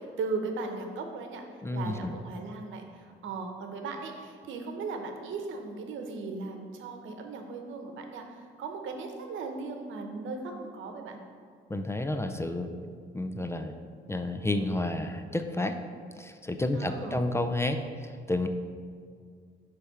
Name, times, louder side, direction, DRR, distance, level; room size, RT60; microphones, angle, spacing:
voice 1, 0.0-2.8 3.2-11.2 16.7-17.2, right 4 dB, 75° right, 4 dB, 0.9 m, -37 dB
voice 2, 1.6-2.1 11.7-12.7 13.1-13.8 14.1-15.8 16.2-18.5, left 2 dB, 15° left, 7 dB, 0.4 m, -30 dB
8.1 x 3.4 x 5.7 m, 2.2 s
cardioid pair, 90°, 20 cm